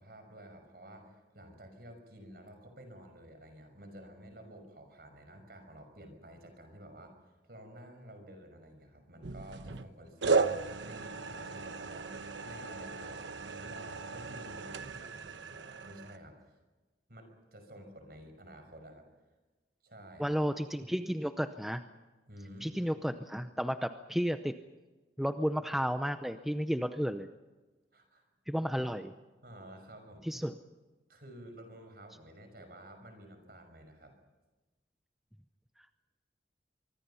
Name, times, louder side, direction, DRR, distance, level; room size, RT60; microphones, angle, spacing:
voice 1, 0.0-7.1 7.5-10.4 10.8-12.2 12.4-16.6 17.1-19.1 19.8-20.4 22.3-22.8 27.9-28.2 29.4-30.2 31.1-34.1, equal, 55° right, 6 dB, 5.9 m, -51 dB
sound 1, 9.2-9.9 10.2-16.2, right 4 dB, 85° right, 1.1 m, -35 dB
voice 2, 20.2-21.8 22.6-24.5 25.2-27.3 28.5-29.1 30.3-30.5, equal, ahead, 8 dB, 0.6 m, -32 dB
24.5 x 24.0 x 5.7 m, 1.2 s
head